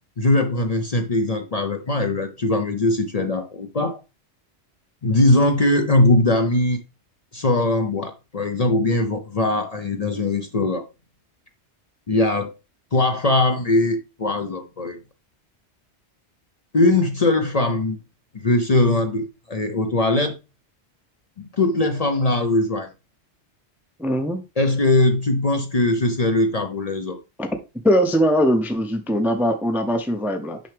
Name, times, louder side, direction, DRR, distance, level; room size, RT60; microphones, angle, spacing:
voice 1, 0.2-4.0 5.0-6.8 7.3-10.8 12.1-12.5 12.9-15.0 16.7-18.0 18.3-20.4 21.4-22.9 24.6-27.2, left 2 dB, 40° left, 0.7 m, -20 dB
voice 2, 24.0-24.4 27.4-27.5 27.8-30.6, equal, ahead, 0.5 m, -21 dB
6.4 x 5.7 x 3.4 m
omnidirectional pair, 1.2 m